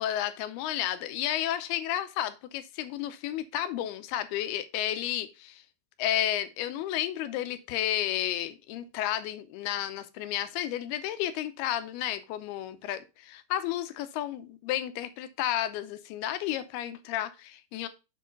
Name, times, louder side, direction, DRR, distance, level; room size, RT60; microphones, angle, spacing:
voice 1, 0.0-5.6 6.0-17.9, left 12 dB, 80° left, 2.8 m, -32 dB
7.4 x 5.4 x 3.9 m
omnidirectional pair, 4.6 m